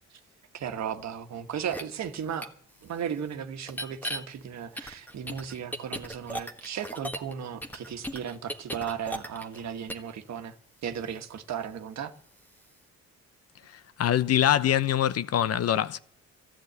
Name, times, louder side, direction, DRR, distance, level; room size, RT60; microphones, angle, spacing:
voice 1, 0.5-2.5 2.8-10.6 10.8-12.1, right 8 dB, 65° right, 1.4 m, -35 dB
sound 1, 1.7-1.8 2.4-2.5 3.7-4.2 4.8-7.3 7.6-9.6 9.9-10.1, equal, 5° left, 1.5 m, -36 dB
voice 2, 14.0-16.0, left 11 dB, 55° left, 0.7 m, -24 dB
13.5 x 10.0 x 8.0 m
cardioid pair, 90°, 30 cm